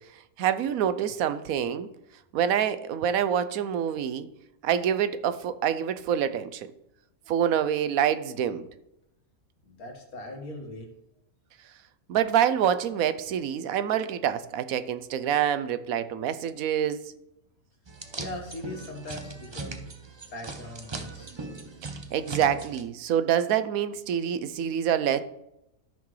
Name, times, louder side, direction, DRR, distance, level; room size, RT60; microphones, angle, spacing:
voice 1, 0.4-1.9 2.3-4.3 4.6-6.7 7.3-8.7 12.1-17.0 22.1-25.2, right 9 dB, 75° right, 13 dB, 1.0 m, -26 dB
voice 2, 9.7-10.9 18.2-19.8 20.3-21.4, left 1 dB, 75° left, 2 dB, 2.1 m, -40 dB
sound 1, 17.9-22.8, right 3 dB, 30° right, 0.4 m, -39 dB
13.5 x 5.9 x 3.2 m, 0.84 s
omnidirectional pair, 1.5 m